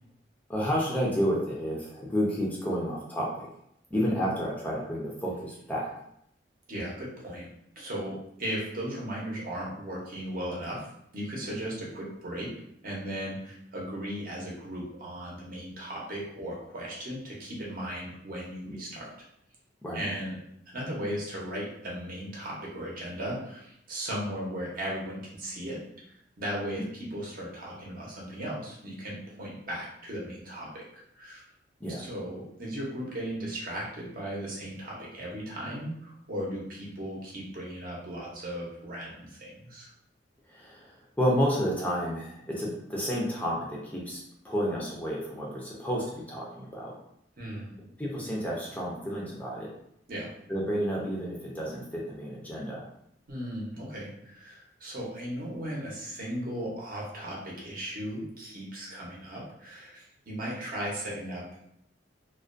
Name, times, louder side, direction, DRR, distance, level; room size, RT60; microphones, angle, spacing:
voice 1, 0.5-3.5 3.9-5.9 18.7-18.8 19.8-20.0 31.8-32.0 40.5-46.9 48.0-49.7 50.5-52.8, equal, 10° left, -4 dB, 0.4 m, -30 dB
voice 2, 6.7-7.5 7.8-10.9 11.1-12.5 12.8-19.1 19.9-20.4 20.7-25.8 26.4-26.8 27.1-30.8 31.1-31.4 32.0-39.9 47.4-47.7 50.1-50.3 53.3-61.4, equal, 50° right, -4 dB, 0.7 m, -36 dB
2.3 x 2.2 x 2.4 m, 0.74 s
head